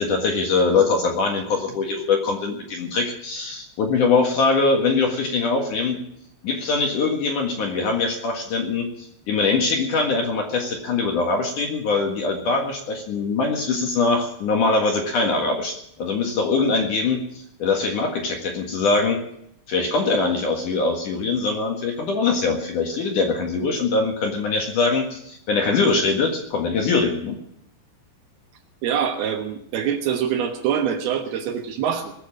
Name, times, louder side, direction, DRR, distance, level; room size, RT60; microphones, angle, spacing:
voice 1, 0.0-6.0 6.4-19.2 19.7-27.4, left 4 dB, 55° left, 2 dB, 2.5 m, -22 dB
voice 2, 28.8-32.1, right 8 dB, 65° right, 5 dB, 2.8 m, -24 dB
21.0 x 7.2 x 8.4 m, 0.73 s
omnidirectional pair, 5.6 m